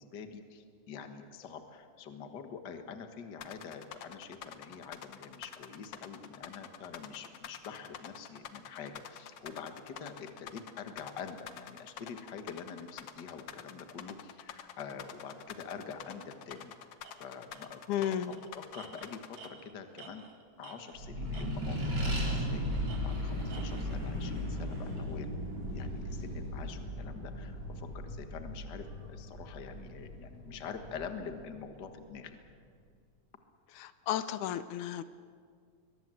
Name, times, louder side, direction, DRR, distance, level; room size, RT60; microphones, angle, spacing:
voice 1, 0.0-16.7 17.2-20.3 20.6-25.3 25.7-32.4, left 6 dB, 40° left, 7 dB, 1.7 m, -46 dB
sound 1, 3.4-19.5, left 9 dB, 60° left, 1.7 m, -47 dB
Tools, 16.5-16.6 17.0-17.1 17.5-17.7 18.0-21.0 21.3-21.9 22.2-23.9, right 5 dB, 55° right, 2.9 m, -52 dB
voice 2, 17.9-18.3 33.7-35.0, left 11 dB, 80° left, 13 dB, 2.1 m, -33 dB
Accelerating revving vroom, 20.9-31.9, equal, 30° right, 4.9 m, -36 dB
22.0 x 21.5 x 7.7 m, 2.1 s
omnidirectional pair, 3.5 m